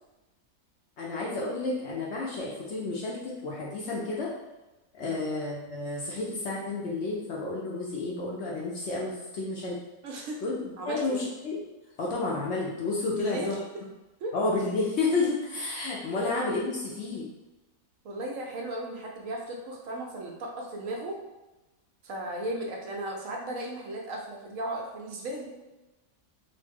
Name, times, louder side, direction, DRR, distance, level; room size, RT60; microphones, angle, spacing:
voice 1, 1.0-4.3 4.9-9.8 10.4-11.6 12.0-13.6 14.3-17.3, left 3 dB, 65° left, -4 dB, 0.7 m, -31 dB
voice 2, 10.0-10.4 10.8-11.2 13.1-13.6 14.2-14.3 16.1-16.3 18.0-21.2 22.0-25.5, right 1 dB, 70° right, 0 dB, 0.9 m, -36 dB
3.0 x 2.0 x 3.3 m, 1.1 s
omnidirectional pair, 1.5 m